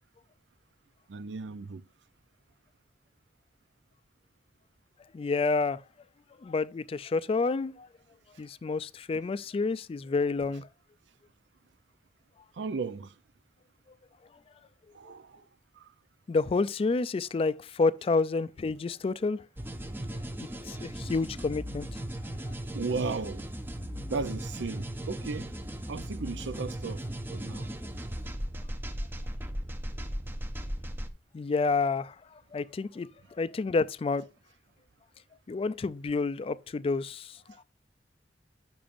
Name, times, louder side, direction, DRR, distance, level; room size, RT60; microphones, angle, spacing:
voice 1, 1.1-1.8 12.5-13.1 14.9-15.4 15.7-15.9 22.7-23.5 24.1-25.5 25.9-27.7, right 4 dB, 85° right, 0.5 m, -35 dB
voice 2, 5.1-5.8 6.4-7.9 8.4-10.7 16.3-19.4 20.6-21.9 22.5-22.6 31.3-32.2 32.5-34.2 35.5-37.4, left 4 dB, 35° left, 0.3 m, -29 dB
sound 1, 19.6-31.1, equal, 10° right, 0.6 m, -37 dB
8.6 x 6.0 x 2.5 m
head